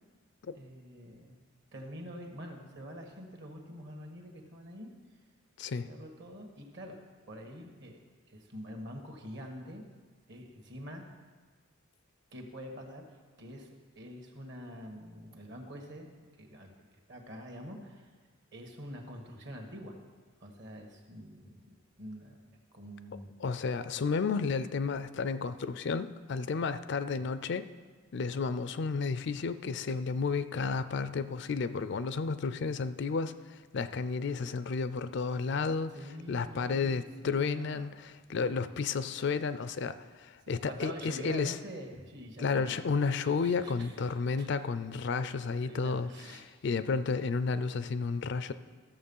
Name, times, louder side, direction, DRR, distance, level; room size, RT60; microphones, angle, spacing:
voice 1, 0.5-1.4 1.7-4.9 5.8-6.9 7.3-8.0 8.3-9.8 10.3-11.0 12.3-13.7 13.9-16.7 17.1-18.1 18.5-19.9 20.4-22.4 22.7-23.3 35.9-37.9 40.6-42.8 43.2-44.0 44.4-44.5 45.6-46.4, equal, 55° right, 3 dB, 1.6 m, -46 dB
voice 2, 5.6-5.9 23.4-27.7 28.1-35.9 36.3-41.6 42.4-48.5, left 4 dB, 55° left, 13 dB, 0.4 m, -32 dB
13.5 x 6.9 x 5.5 m, 1.5 s
head